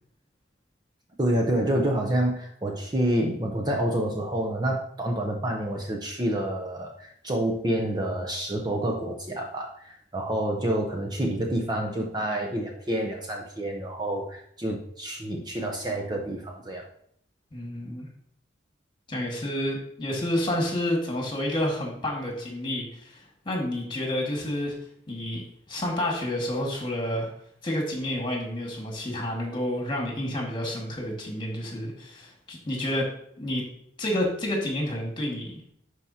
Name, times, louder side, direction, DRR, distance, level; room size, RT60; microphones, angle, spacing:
voice 1, 1.2-16.9, right 1 dB, 20° right, 1 dB, 0.7 m, -28 dB
voice 2, 17.5-18.1 19.1-24.7 25.1-27.3 27.6-33.6 34.0-35.7, left 1 dB, 25° left, -1 dB, 1.9 m, -29 dB
11.0 x 4.8 x 2.8 m, 0.68 s
head